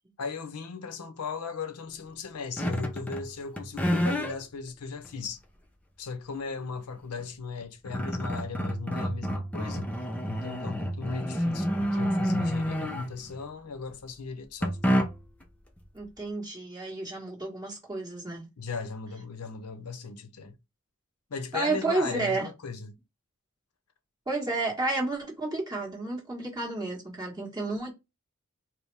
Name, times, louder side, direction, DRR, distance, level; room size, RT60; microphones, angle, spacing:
voice 1, 0.2-5.4 6.0-10.0 10.3-15.0 18.6-20.6 21.3-23.0, left 5 dB, 90° left, 0.7 m, -37 dB
sound 1, 2.6-3.3 3.6-4.3 5.0-5.1 7.2-7.3 7.6-13.4 14.6-15.4, equal, 5° left, 0.4 m, -29 dB
voice 2, 15.9-18.5 21.5-22.5 24.3-27.9, right 3 dB, 15° right, 1.4 m, -31 dB
4.5 x 2.0 x 3.3 m
head